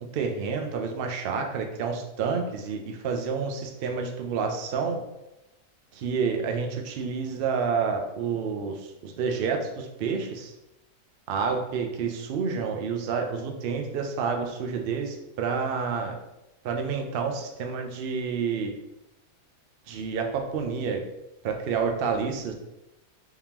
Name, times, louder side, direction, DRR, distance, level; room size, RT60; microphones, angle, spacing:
voice 1, 0.1-5.0 5.9-10.5 11.3-16.1 16.6-18.7 19.9-21.0 21.4-22.5, right 5 dB, 70° right, 4 dB, 0.5 m, -29 dB
3.6 x 3.6 x 2.9 m, 0.95 s
omnidirectional pair, 1.6 m